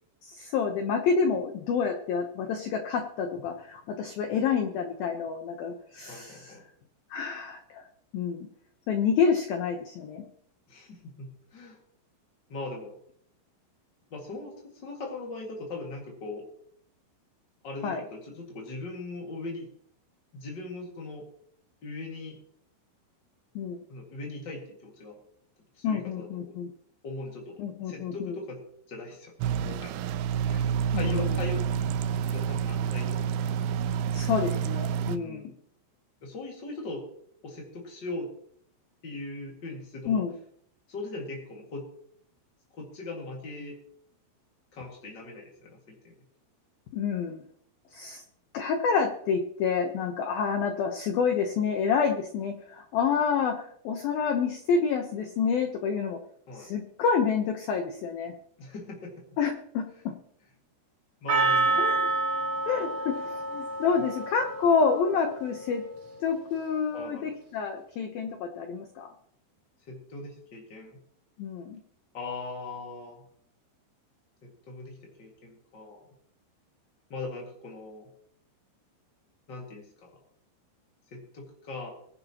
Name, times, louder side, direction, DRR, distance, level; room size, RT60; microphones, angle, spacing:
voice 1, 0.2-6.6 7.1-7.9 8.1-8.5 8.9-10.3 17.8-18.0 23.6-23.8 25.8-26.7 27.6-28.4 30.9-31.4 34.1-35.5 40.1-40.3 46.9-47.4 47.9-48.2 48.5-56.2 56.5-58.3 59.4-60.2 61.8-62.1 62.7-65.8 66.2-69.1 71.4-71.8, left 6 dB, 85° left, 5 dB, 2.0 m, -28 dB
voice 2, 6.1-6.6 10.7-11.8 12.5-13.0 14.1-16.5 17.6-19.7 20.3-21.2 21.8-22.4 23.9-25.1 25.7-26.5 27.0-28.6 28.9-30.1 30.4-32.0 32.3-33.2 35.1-35.5 36.2-37.0 37.4-38.3 39.0-40.2 40.9-41.9 42.7-43.8 44.7-46.1 56.5-56.7 58.6-59.1 61.2-62.1 64.0-64.1 66.9-67.3 69.9-71.0 72.1-73.2 74.4-76.1 77.1-78.1 79.5-80.1 81.1-81.9, left 2 dB, 55° left, -1 dB, 1.2 m, -40 dB
sound 1, 29.4-35.2, right 8 dB, 90° right, 2.5 m, -28 dB
Percussion, 61.3-65.6, right 3 dB, 40° right, 4.2 m, -28 dB
22.0 x 11.0 x 3.0 m, 0.65 s
omnidirectional pair, 5.8 m